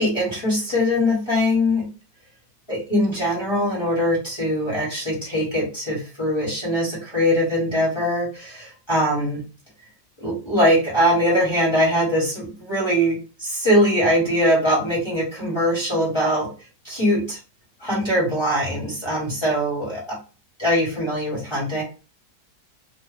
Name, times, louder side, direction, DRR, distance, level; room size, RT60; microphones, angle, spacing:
voice 1, 0.0-1.9 2.7-9.4 10.2-16.5 16.8-17.4 17.8-20.2 20.6-21.8, equal, 20° left, -6 dB, 1.1 m, -22 dB
2.9 x 2.1 x 3.3 m, 0.34 s
omnidirectional pair, 1.8 m